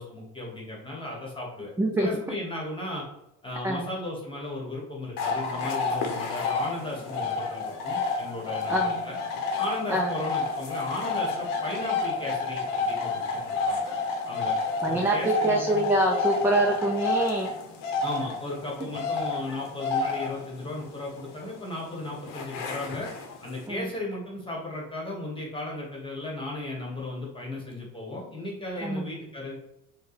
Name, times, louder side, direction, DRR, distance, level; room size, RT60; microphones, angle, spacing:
voice 1, 0.0-1.7 2.0-3.0 3.4-9.2 9.6-13.8 14.3-14.5 14.9-15.9 18.0-23.1 23.4-29.6, left 2 dB, 15° left, -2 dB, 1.2 m, -35 dB
voice 2, 1.8-2.1 3.6-3.9 8.7-9.0 9.9-10.1 14.8-17.5 23.7-23.9 28.8-29.1, right 1 dB, 5° right, -1 dB, 0.4 m, -25 dB
sound 1, 5.2-23.7, left 4 dB, 70° left, 0.9 m, -30 dB
4.4 x 2.3 x 3.3 m, 0.84 s
supercardioid pair, 105°, 34 cm